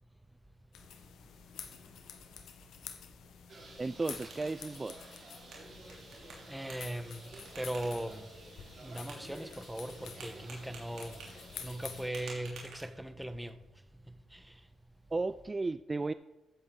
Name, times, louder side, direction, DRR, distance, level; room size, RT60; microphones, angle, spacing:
sound 1, 0.7-12.1, left 8 dB, 75° left, 1.1 m, -50 dB
Bird, 3.5-12.5, right 2 dB, 55° right, 4.3 m, -53 dB
sound 2, 3.7-13.3, right 4 dB, 75° right, 3.1 m, -54 dB
voice 1, 3.8-5.0 15.1-16.1, right 3 dB, 30° right, 0.4 m, -34 dB
voice 2, 6.5-8.3 8.8-13.6 14.1-14.6, right 1 dB, 5° right, 1.1 m, -39 dB
15.0 x 7.9 x 3.9 m
supercardioid pair, 55°, 0 cm